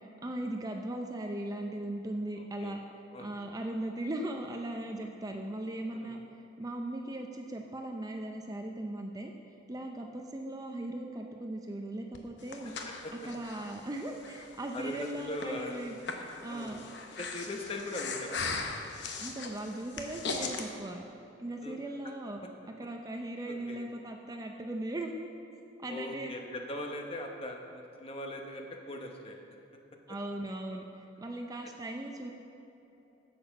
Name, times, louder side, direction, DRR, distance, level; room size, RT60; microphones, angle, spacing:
voice 1, 0.2-2.8 3.2-6.2 6.6-9.3 9.7-12.7 13.2-16.0 16.4-16.8 19.2-21.1 21.4-22.4 22.8-25.1 25.8-26.3 30.1-32.3, right 1 dB, 20° right, 3 dB, 0.5 m, -38 dB
Breathing, 12.1-20.7, left 4 dB, 60° left, 0.9 m, -39 dB
voice 2, 14.7-15.9 16.5-16.8 17.2-18.4 21.6-21.8 22.4-22.5 23.7-23.8 25.9-29.4, left 1 dB, 30° left, 3 dB, 0.9 m, -40 dB
8.5 x 7.7 x 5.9 m, 3.0 s
head